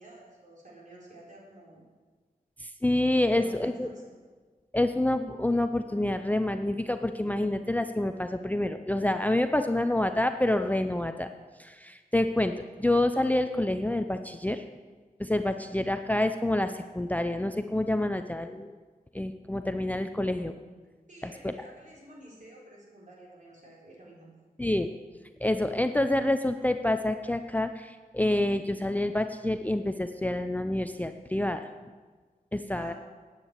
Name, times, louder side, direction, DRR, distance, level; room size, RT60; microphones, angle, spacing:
voice 1, 0.0-1.8 3.3-4.0 15.6-15.7 21.1-24.3 32.7-32.9, right 1 dB, 55° right, -4 dB, 4.2 m, -50 dB
voice 2, 2.6-3.9 4.7-11.3 11.6-14.6 15.2-18.7 19.1-20.5 21.2-21.5 24.6-24.9 25.4-31.7 32.5-32.9, left 1 dB, 10° left, 8 dB, 0.5 m, -27 dB
9.8 x 9.1 x 8.1 m, 1.4 s
wide cardioid pair, 90°, 16 cm